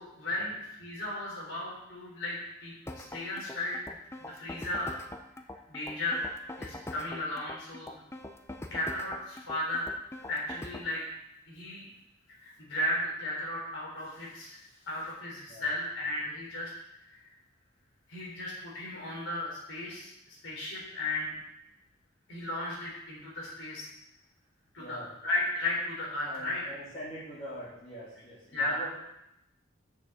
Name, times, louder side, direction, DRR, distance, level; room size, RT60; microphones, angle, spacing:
voice 1, 0.0-4.9 5.7-6.2 6.6-8.0 8.7-9.9 10.3-11.0 11.5-11.9 12.3-16.7 17.0-17.2 18.1-21.3 22.3-23.9 24.7-26.6 28.5-28.8, left 1 dB, 75° left, -4 dB, 3.6 m, -35 dB
sound 1, 2.9-10.9, left 1 dB, 15° left, 0.5 m, -43 dB
voice 2, 24.8-25.1 26.2-28.9, equal, 30° left, -8 dB, 2.8 m, -43 dB
6.8 x 6.0 x 7.3 m, 0.84 s
head